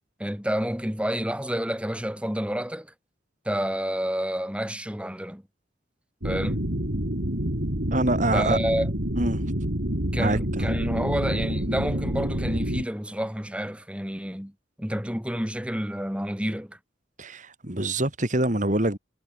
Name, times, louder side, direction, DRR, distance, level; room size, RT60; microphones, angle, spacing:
voice 1, 0.2-2.9 3.4-5.4 6.2-6.6 8.3-8.9 10.1-14.5 14.8-16.8, equal, 5° right, 3.2 m, -29 dB
sound 1, 6.2-12.8, equal, 60° right, 4.1 m, -28 dB
voice 2, 7.9-8.6 9.2-9.4 10.2-10.7 17.2-19.0, right 1 dB, 40° right, 2.7 m, -25 dB
head